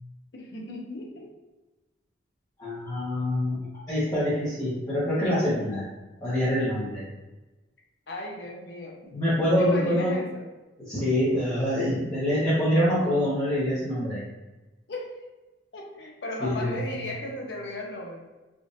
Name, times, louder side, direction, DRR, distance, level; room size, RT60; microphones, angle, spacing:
voice 1, 0.3-1.3 8.1-9.0 9.4-10.4 14.9-15.1 15.7-18.2, left 1 dB, 60° left, -1 dB, 0.6 m, -36 dB
voice 2, 2.6-5.9 6.2-7.0 9.1-10.1 10.8-14.2 16.4-16.8, equal, 20° left, -12 dB, 0.9 m, -25 dB
3.6 x 2.5 x 2.6 m, 1.1 s
head